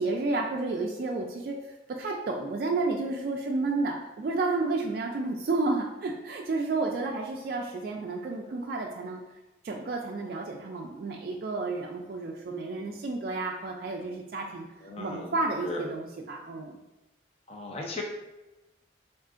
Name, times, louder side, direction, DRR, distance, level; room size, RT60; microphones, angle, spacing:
voice 1, 0.0-1.5 2.0-9.2 9.6-16.7, right 3 dB, 50° right, 0 dB, 0.3 m, -31 dB
voice 2, 14.8-15.3 15.6-15.9 17.5-18.0, left 3 dB, 30° left, 0 dB, 0.5 m, -36 dB
4.5 x 2.4 x 2.4 m, 1.0 s
head